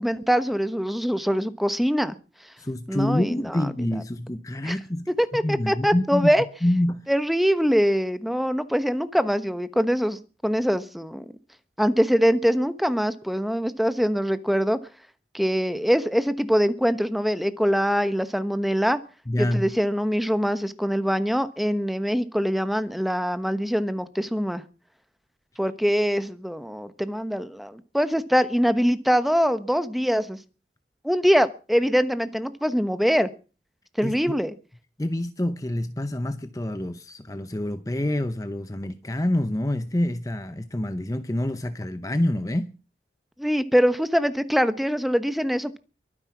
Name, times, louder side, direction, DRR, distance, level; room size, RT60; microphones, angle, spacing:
voice 1, 0.0-2.1 2.9-3.6 4.6-4.8 5.2-6.4 7.1-11.2 11.8-14.8 15.3-19.0 19.4-24.6 25.6-30.4 31.0-33.3 34.0-34.5 43.4-45.8, equal, ahead, 1.1 m, -23 dB
voice 2, 2.6-5.1 5.4-6.3 6.6-7.0 19.3-19.7 34.0-34.3 35.0-42.7, left 1 dB, 20° left, 0.8 m, -27 dB
23.0 x 9.9 x 6.1 m
head